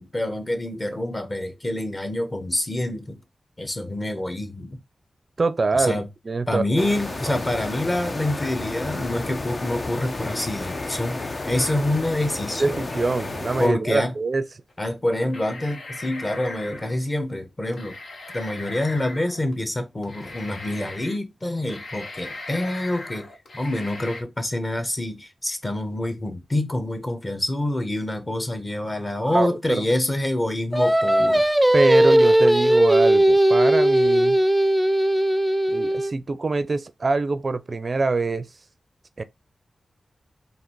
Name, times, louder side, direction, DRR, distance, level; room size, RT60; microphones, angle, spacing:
voice 1, 0.0-3.2 3.6-4.8 5.7-6.0 6.5-12.9 13.6-14.1 14.8-18.0 18.3-23.3 23.5-31.4, left 1 dB, 30° left, 1.3 m, -26 dB
voice 2, 5.4-6.0 6.3-6.8 12.6-14.5 29.2-29.9 31.7-34.4 35.7-38.5 39.2-39.3, right 3 dB, 50° right, 0.5 m, -24 dB
sound 1, 6.8-13.7, left 2 dB, 45° left, 0.7 m, -32 dB
sound 2, 10.1-11.7 12.6-13.5 14.7-14.8 15.3-17.0 17.7-19.5 20.0-21.2 21.5-24.2, left 2 dB, 70° left, 1.0 m, -40 dB
Singing, 30.7-36.1, right 1 dB, 5° right, 0.5 m, -18 dB
3.9 x 2.7 x 4.5 m
cardioid pair, 50°, 0 cm